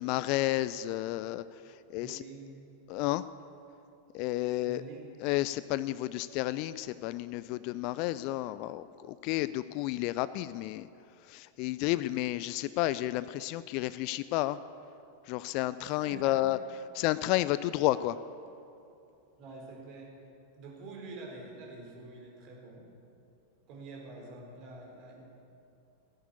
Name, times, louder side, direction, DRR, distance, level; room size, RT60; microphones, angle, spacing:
voice 1, 0.0-1.4 1.9-2.2 2.9-3.2 4.1-4.8 5.2-10.9 11.3-14.6 15.3-16.6 16.9-18.2, left 16 dB, 45° left, 16 dB, 0.4 m, -31 dB
voice 2, 2.0-2.6 4.7-5.1 15.8-16.6 19.4-20.2 20.5-22.9 23.7-25.2, right 3 dB, 40° right, -1 dB, 4.2 m, -46 dB
15.0 x 10.5 x 8.5 m, 2.7 s
figure-of-eight pair, 90°, 0 cm